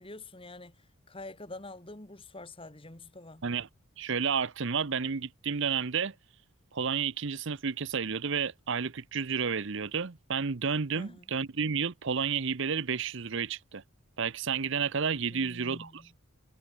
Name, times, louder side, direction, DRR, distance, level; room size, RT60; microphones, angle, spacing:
voice 1, 0.0-3.4 10.9-11.3 15.3-16.1, left 2 dB, 25° left, 2.2 m, -46 dB
voice 2, 4.0-6.1 6.7-13.8 14.2-16.0, right 6 dB, 55° right, 0.8 m, -31 dB
head